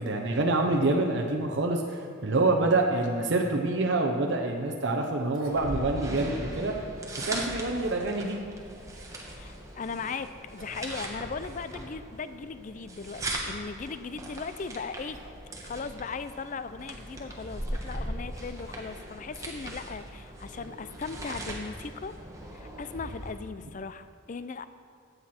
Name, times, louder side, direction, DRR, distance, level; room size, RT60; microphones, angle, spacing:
voice 1, 0.0-6.7 7.2-8.4, right 2 dB, 60° right, 2 dB, 0.7 m, -26 dB
sound 1, 5.1-6.2 6.5-6.6 7.5-8.2 10.0-10.2 10.6-10.9 11.2-11.3 12.1-12.2 13.9-16.1, right 1 dB, 80° right, 1.3 m, -43 dB
sound 2, 5.5-23.3, right 1 dB, 15° right, 1.2 m, -39 dB
voice 2, 9.3-15.2 15.6-22.2 22.5-24.7, left 5 dB, 40° left, 13 dB, 0.4 m, -38 dB
13.5 x 8.0 x 4.3 m, 2.2 s
head